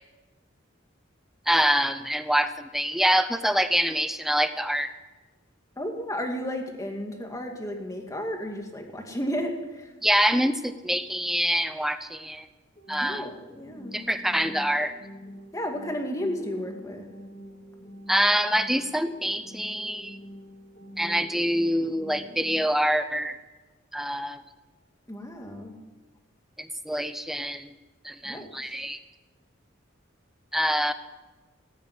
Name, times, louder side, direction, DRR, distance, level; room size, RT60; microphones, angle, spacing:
voice 1, 1.5-4.9 10.0-12.5 12.9-13.3 13.9-14.9 18.1-20.2 21.0-23.4 23.9-24.4 26.6-27.7 28.0-29.0 30.5-30.9, equal, ahead, 10 dB, 0.7 m, -25 dB
voice 2, 5.8-9.9 13.0-13.9 15.5-17.1 25.1-25.8 28.2-28.5, equal, 15° left, 2 dB, 2.1 m, -33 dB
sound 1, 12.8-22.8, equal, 35° left, 2.8 m, -46 dB
17.5 x 9.3 x 8.3 m, 1.2 s
head